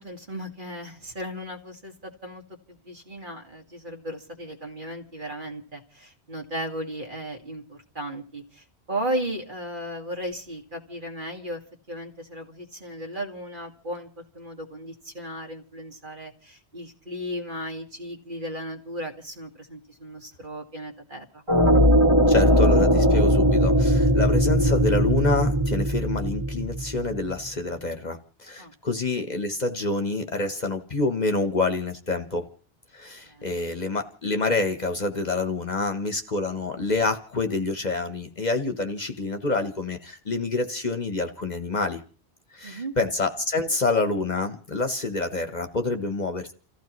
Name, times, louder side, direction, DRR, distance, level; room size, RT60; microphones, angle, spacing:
voice 1, 0.0-2.4 2.7-11.6 11.9-21.4 28.6-28.7 33.3-33.6 42.6-42.9, equal, 50° right, 3 dB, 2.2 m, -35 dB
sound 1, 21.5-27.3, equal, 25° right, 2.2 m, -20 dB
voice 2, 22.3-32.5 32.9-42.0 42.5-46.5, left 3 dB, 40° left, 7 dB, 1.1 m, -27 dB
29.5 x 15.0 x 3.1 m, 0.39 s
omnidirectional pair, 1.1 m